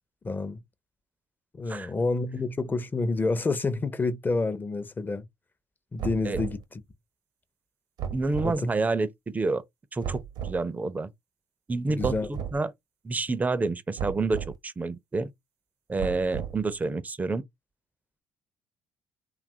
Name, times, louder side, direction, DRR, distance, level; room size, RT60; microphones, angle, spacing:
voice 1, 0.2-0.6 1.5-5.2 5.9-6.6 8.4-8.5 11.9-12.3, left 3 dB, 25° left, 0.6 m, -28 dB
sound 1, 6.0-6.6 8.0-8.6 10.0-10.6 12.0-12.6 14.0-14.5 16.0-16.7, right 8 dB, 65° right, 0.7 m, -34 dB
voice 2, 8.1-9.6 9.9-11.1 11.7-12.7 13.0-15.3 15.9-17.4, right 3 dB, 20° right, 0.5 m, -28 dB
2.8 x 2.4 x 2.7 m
supercardioid pair, 65°, 8 cm